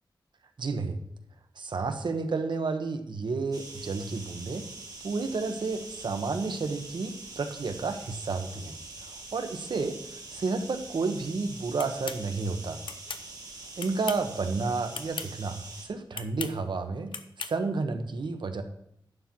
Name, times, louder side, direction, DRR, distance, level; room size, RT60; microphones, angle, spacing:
voice 1, 0.6-1.0 1.6-4.6 5.0-8.7 9.0-12.8 13.8-17.1 17.4-18.6, right 4 dB, 70° right, 7 dB, 1.1 m, -31 dB
sound 1, 3.5-15.9, right 3 dB, 50° right, 1.9 m, -44 dB
sound 2, 11.8-12.2 12.9-13.2 13.8-14.3 14.9-15.3 16.1-16.5 17.1-17.5, left 5 dB, 80° left, 0.7 m, -37 dB
11.5 x 4.5 x 7.4 m, 0.76 s
wide cardioid pair, 120°, 8 cm